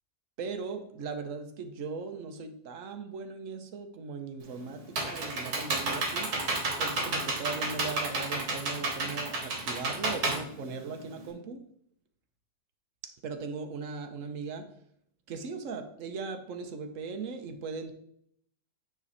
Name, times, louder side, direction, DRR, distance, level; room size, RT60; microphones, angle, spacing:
voice 1, 0.4-6.3 6.8-11.6 13.2-14.7 15.3-17.9, right 4 dB, 60° right, 7 dB, 1.1 m, -38 dB
Computer keyboard, 4.4-11.3, right 2 dB, 75° right, 1.8 m, -31 dB
9.0 x 3.2 x 4.0 m, 0.68 s
omnidirectional pair, 1.6 m